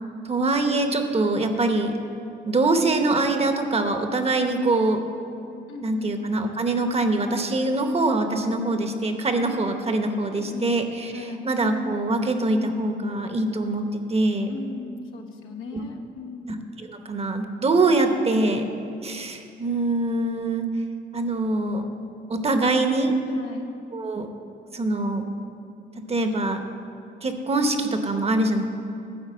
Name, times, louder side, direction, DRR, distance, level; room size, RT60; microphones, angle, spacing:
voice 1, 0.2-1.9 2.4-5.0 5.8-14.5 16.5-18.6 19.0-20.7 21.1-21.8 22.3-23.1 23.9-24.3 24.7-25.3 26.1-26.6 27.2-28.6, right 2 dB, 30° right, 6 dB, 0.9 m, -24 dB
voice 2, 5.7-6.2 10.3-10.8 11.1-11.5 14.5-16.6 23.3-23.8, left 3 dB, 90° left, 1 dB, 1.0 m, -37 dB
12.0 x 4.7 x 7.5 m, 2.7 s
cardioid pair, 90°, 20 cm